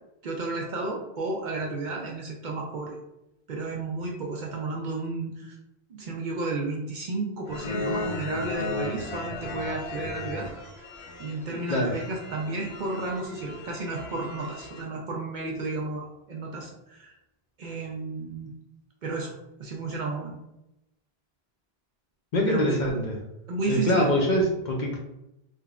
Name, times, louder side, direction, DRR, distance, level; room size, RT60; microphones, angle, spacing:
voice 1, 0.2-3.0 3.5-5.6 5.9-10.5 11.2-17.2 17.6-18.5 19.0-19.3 19.6-20.4 22.5-22.8 23.5-24.1, right 3 dB, 60° right, -1 dB, 0.6 m, -32 dB
sound 1, 7.5-14.8, left 2 dB, 90° left, 0.9 m, -36 dB
voice 2, 22.3-23.2 23.7-25.0, left 1 dB, 55° left, -1 dB, 0.6 m, -24 dB
3.5 x 2.0 x 2.3 m, 0.87 s
omnidirectional pair, 1.0 m